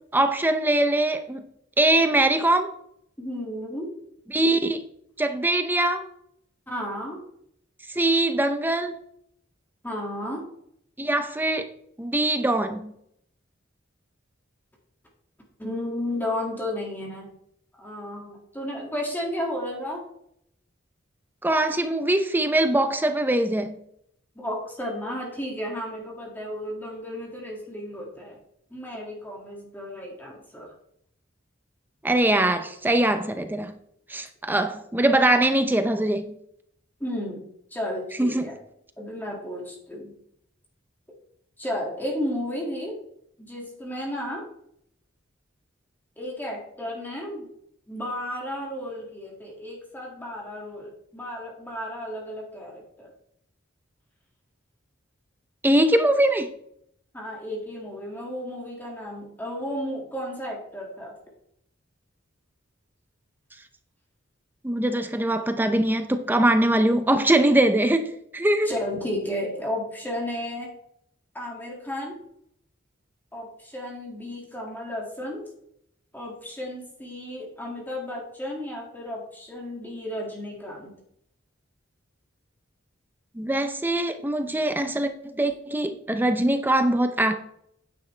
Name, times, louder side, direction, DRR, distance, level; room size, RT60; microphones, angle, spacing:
voice 1, 0.1-1.5 1.8-2.7 4.3-4.8 5.2-6.1 7.9-9.0 11.0-11.7 12.0-12.9 21.4-23.7 32.0-33.7 34.1-36.3 38.2-38.5 55.6-56.5 64.6-68.7 83.4-87.4, right 1 dB, 10° right, 0.6 m, -22 dB
voice 2, 3.2-3.9 6.7-7.2 9.8-10.4 15.6-17.3 17.8-20.0 24.4-28.4 28.7-30.7 37.0-37.5 37.7-38.6 39.0-40.1 41.6-43.0 43.4-44.4 46.2-47.5 47.9-53.1 57.1-61.1 68.6-70.7 71.3-72.2 73.3-75.4 76.1-80.9, left 1 dB, 10° left, 2.1 m, -33 dB
9.9 x 9.7 x 3.3 m
head